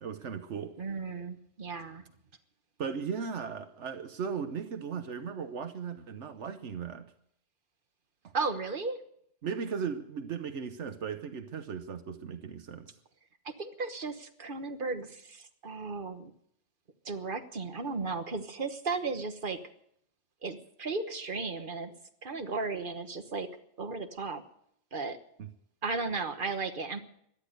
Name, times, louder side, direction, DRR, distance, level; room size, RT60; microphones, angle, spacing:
voice 1, 0.0-0.7 2.8-7.1 8.2-8.3 9.4-12.9 25.4-25.5, right 6 dB, 80° right, 9 dB, 1.3 m, -37 dB
voice 2, 0.8-2.0 8.3-9.0 13.4-16.3 17.0-19.6 20.4-21.9 22.2-23.5 23.8-24.4 24.9-25.2 25.8-27.0, right 4 dB, 50° right, 8 dB, 1.4 m, -35 dB
17.0 x 12.5 x 6.7 m, 0.69 s
omnidirectional pair, 1.2 m